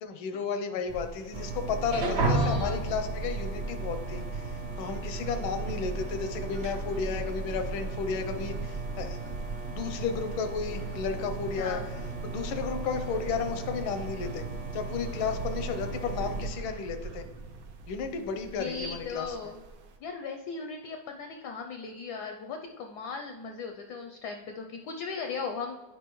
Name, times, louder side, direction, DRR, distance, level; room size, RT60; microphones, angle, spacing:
voice 1, 0.0-9.2 9.7-11.8 12.2-14.5 14.7-17.3 17.9-19.5, left 5 dB, 90° left, 7 dB, 1.5 m, -33 dB
sound 1, 0.9-20.0, right 4 dB, 90° right, 1.5 m, -46 dB
sound 2, 1.3-16.5, right 3 dB, 55° right, 0.7 m, -34 dB
voice 2, 2.3-2.8 5.1-5.2 11.6-11.9 18.6-19.6 20.0-25.8, left 5 dB, 70° left, 4 dB, 1.0 m, -37 dB
9.2 x 4.9 x 3.0 m, 1.3 s
omnidirectional pair, 2.1 m